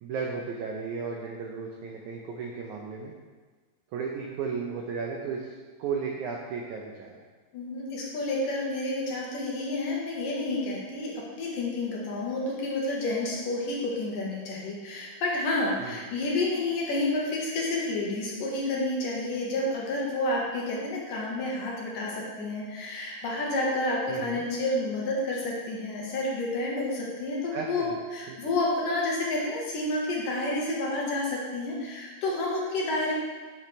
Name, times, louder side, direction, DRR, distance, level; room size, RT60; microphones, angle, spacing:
voice 1, 0.0-3.1 3.9-5.5 5.8-7.1 15.8-16.0 24.1-24.4 27.5-28.0 28.3-28.4, right 5 dB, 85° right, 0 dB, 1.7 m, -34 dB
voice 2, 7.5-27.9 28.1-33.1, left 2 dB, 65° left, -3 dB, 2.8 m, -30 dB
10.0 x 6.3 x 3.3 m, 1.4 s
omnidirectional pair, 4.4 m